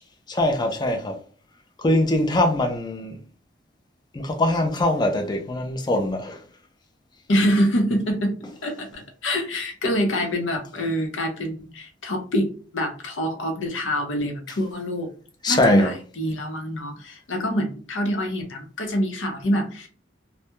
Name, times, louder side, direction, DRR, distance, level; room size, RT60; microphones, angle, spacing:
voice 1, 0.3-1.2 1.8-3.2 4.1-6.4 15.4-15.9, left 1 dB, 25° left, 0.4 m, -22 dB
voice 2, 7.3-8.3 8.6-12.5 12.7-15.1 15.5-19.9, equal, 90° left, 0.7 m, -25 dB
2.2 x 2.1 x 2.9 m
head